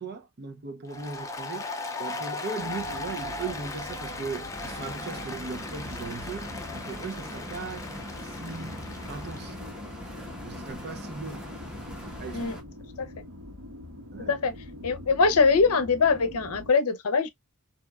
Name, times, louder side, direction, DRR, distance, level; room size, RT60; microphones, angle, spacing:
voice 1, 0.0-1.7 2.0-7.9 8.3-9.6 10.4-11.4 12.2-12.5 14.1-14.3, right 4 dB, 45° right, 0.6 m, -38 dB
Applause, 0.9-9.6, left 3 dB, 15° left, 0.5 m, -38 dB
sound 1, 2.6-16.7, left 1 dB, 70° right, 1.4 m, -44 dB
sound 2, 4.5-12.6, equal, 5° right, 1.0 m, -41 dB
voice 2, 14.2-14.5 14.8-17.3, left 4 dB, 70° left, 0.6 m, -23 dB
3.4 x 2.8 x 2.2 m
head